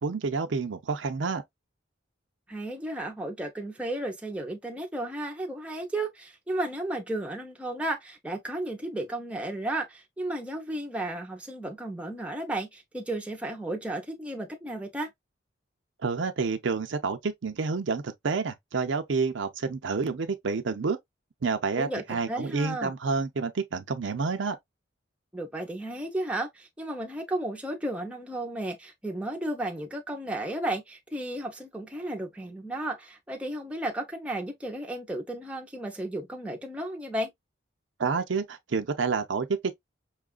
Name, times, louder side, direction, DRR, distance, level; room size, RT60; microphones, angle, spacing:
voice 1, 0.0-1.4 16.0-21.0 21.4-24.6 38.0-39.7, right 4 dB, 70° right, 0.5 m, -29 dB
voice 2, 2.5-15.1 21.8-22.9 25.3-37.3, right 1 dB, 5° right, 0.7 m, -33 dB
5.7 x 2.4 x 2.3 m
head